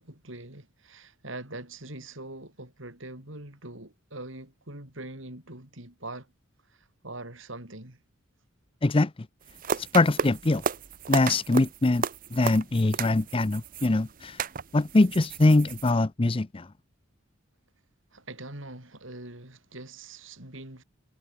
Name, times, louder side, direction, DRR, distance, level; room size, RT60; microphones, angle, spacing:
voice 1, 0.0-6.3 6.7-8.0 18.1-20.8, right 2 dB, 65° right, 5.5 m, -43 dB
sound 1, 9.4-15.9, right 5 dB, 40° right, 0.7 m, -34 dB
voice 2, 9.9-10.6 11.1-12.0 12.3-14.4 14.7-16.7, left 2 dB, 25° left, 0.6 m, -23 dB
head